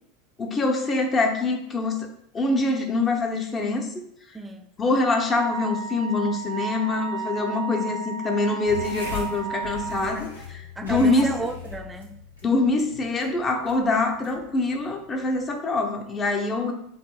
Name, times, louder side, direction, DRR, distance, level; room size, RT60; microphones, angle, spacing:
voice 1, 0.4-2.1 2.3-3.9 4.8-10.3 10.8-11.3 12.4-16.7, left 2 dB, 25° left, 3 dB, 0.7 m, -24 dB
voice 2, 4.3-4.8 10.1-10.3 10.8-12.2, right 3 dB, 10° right, 5 dB, 0.5 m, -34 dB
Wind instrument woodwind instrument, 5.3-10.1, right 4 dB, 80° right, 0.6 m, -33 dB
sound 1, 8.6-15.5, left 6 dB, 85° left, 0.9 m, -39 dB
7.2 x 2.6 x 2.3 m, 0.72 s
figure-of-eight pair, 80°, 0 cm